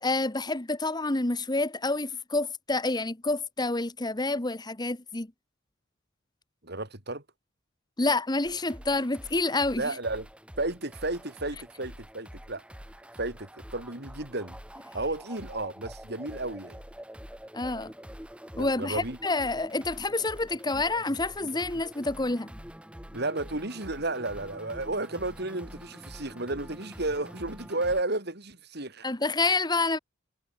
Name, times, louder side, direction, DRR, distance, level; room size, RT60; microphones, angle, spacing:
voice 1, 0.0-5.3 8.0-9.8 17.5-17.9 18.6-22.5 29.0-30.0, left 2 dB, 20° left, 1.3 m, -28 dB
voice 2, 6.6-7.2 9.8-10.3 10.6-12.6 13.2-14.6 14.9-16.8 18.5-19.2 23.1-29.1, right 2 dB, 55° right, 5.1 m, -33 dB
sound 1, 8.4-28.0, equal, 5° right, 6.9 m, -46 dB
head